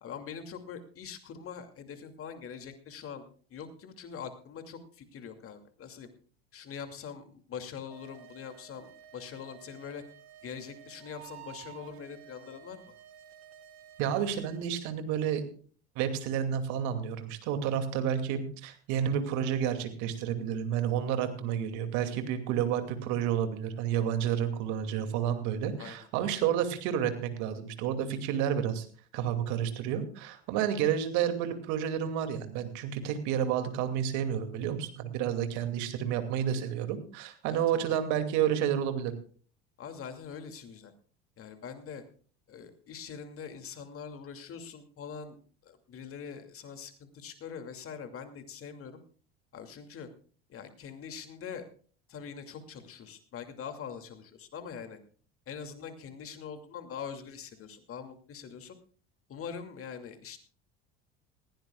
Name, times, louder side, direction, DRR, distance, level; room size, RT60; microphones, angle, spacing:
voice 1, 0.0-6.1 6.5-10.0 10.4-12.8 25.8-26.0 37.4-37.9 39.8-40.9 41.4-42.0 42.5-45.4 45.6-49.0 49.5-50.1 50.5-51.7 52.1-55.0 55.5-58.8 59.3-60.4, left 7 dB, 45° left, 7 dB, 2.6 m, -43 dB
sound 1, 7.9-14.6, right 10 dB, 85° right, 1.6 m, -52 dB
voice 2, 14.0-15.4 16.0-28.9 29.1-39.1, right 9 dB, 65° right, 8 dB, 2.5 m, -30 dB
20.0 x 16.0 x 2.4 m, 0.43 s
hypercardioid pair, 75°, 32 cm